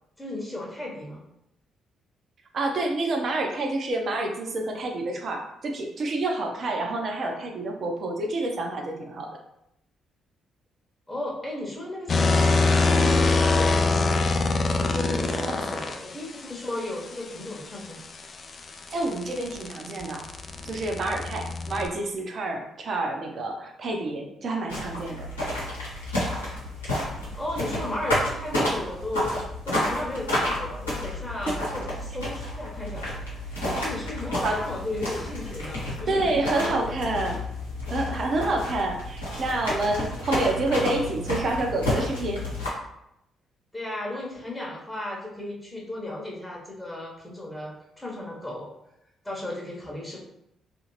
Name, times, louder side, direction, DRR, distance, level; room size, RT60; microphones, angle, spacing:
voice 1, 0.2-1.2 11.1-13.8 14.8-18.0 27.4-29.4 29.6-33.3 33.7-37.0 43.7-48.7 49.2-50.2, left 1 dB, 10° left, -3 dB, 0.9 m, -35 dB
voice 2, 2.5-9.3 15.3-15.5 18.9-20.2 20.6-25.3 31.5-31.6 34.4-34.6 36.1-37.4 37.9-42.5, right 2 dB, 45° right, 3 dB, 0.6 m, -28 dB
sound 1, 12.1-16.0 18.2-21.9, left 3 dB, 40° left, 0.3 m, -23 dB
sound 2, 24.7-42.7, left 1 dB, 80° left, 0.9 m, -30 dB
2.8 x 2.5 x 2.9 m, 0.82 s
figure-of-eight pair, 40°, 0 cm